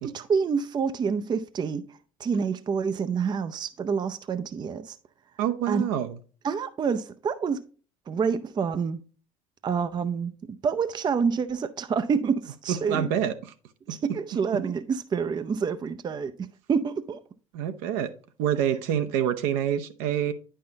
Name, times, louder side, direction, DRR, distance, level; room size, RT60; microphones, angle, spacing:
voice 1, 0.0-5.0 5.7-5.9 6.4-7.6 8.1-9.0 9.6-13.1 13.9-16.3 16.7-17.2, right 6 dB, 25° right, 0.5 m, -27 dB
voice 2, 5.4-6.2 12.7-13.3 13.9-14.0 17.5-18.1 18.4-20.3, right 10 dB, 60° right, 0.7 m, -26 dB
9.3 x 5.6 x 2.8 m
figure-of-eight pair, 60°, 17 cm